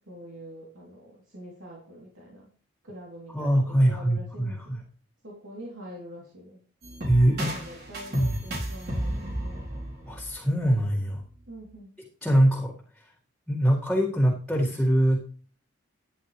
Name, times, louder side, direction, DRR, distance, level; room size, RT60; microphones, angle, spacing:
voice 1, 0.0-2.5 2.8-4.8 5.2-6.6 7.4-9.7 11.5-12.0, equal, 75° right, -4 dB, 3.3 m, -45 dB
voice 2, 3.3-4.8 7.1-7.5 8.1-8.4 10.1-11.2 12.2-12.7 13.5-15.3, right 1 dB, 5° left, -7 dB, 2.1 m, -23 dB
sound 1, 6.8-10.7, right 1 dB, 50° right, 3.9 m, -33 dB
12.5 x 9.7 x 3.3 m, 0.43 s
head